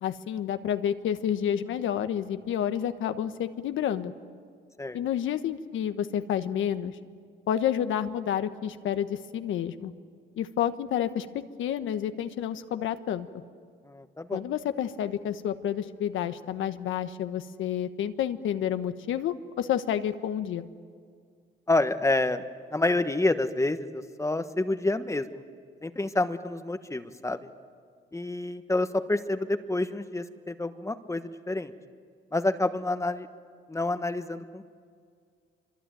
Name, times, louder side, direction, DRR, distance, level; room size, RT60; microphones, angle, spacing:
voice 1, 0.0-4.1 4.9-6.9 7.5-9.9 10.4-13.3 14.3-20.7, left 10 dB, 80° left, 10 dB, 1.2 m, -29 dB
voice 2, 13.8-14.4 21.7-22.4 22.7-25.4 25.8-27.4 28.1-31.7 32.3-33.3 33.7-34.7, left 2 dB, 15° left, 9 dB, 1.3 m, -28 dB
25.5 x 24.0 x 9.2 m, 2.1 s
cardioid pair, 90°, 20 cm